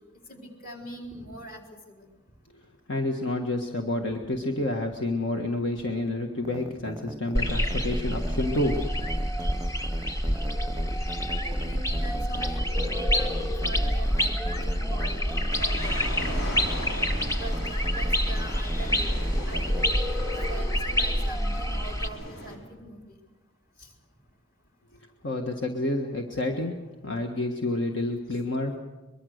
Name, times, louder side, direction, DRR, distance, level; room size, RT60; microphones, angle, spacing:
voice 1, 0.3-2.0 11.3-16.0 16.3-16.6 17.4-19.1 19.5-20.0 20.5-23.0 23.8-23.9 28.3-28.4, right 1 dB, 45° left, 1 dB, 4.1 m, -42 dB
voice 2, 2.9-8.8 25.2-26.7 27.0-28.8, left 2 dB, 65° left, 3 dB, 1.7 m, -29 dB
sound 1, 6.4-19.9, right 1 dB, 15° right, 0.7 m, -40 dB
sound 2, 7.3-22.1, equal, 15° left, 1.4 m, -27 dB
sound 3, 15.5-22.6, equal, 85° left, 5.4 m, -39 dB
23.5 x 23.0 x 6.6 m, 1.2 s
head